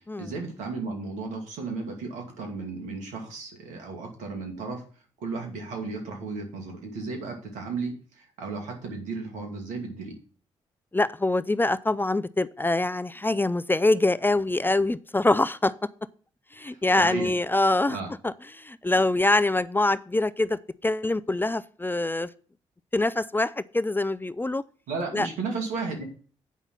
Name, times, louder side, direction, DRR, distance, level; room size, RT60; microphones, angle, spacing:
voice 1, 0.2-4.8 5.2-10.1 16.6-17.3 17.9-18.1 24.9-26.0, right 4 dB, 80° right, 2 dB, 2.6 m, -34 dB
voice 2, 10.9-15.7 16.5-18.0 18.2-22.3 22.9-24.6 25.1-25.3, left 2 dB, 15° left, 16 dB, 0.5 m, -24 dB
8.3 x 5.6 x 5.9 m, 0.42 s
hypercardioid pair, 45°, 13 cm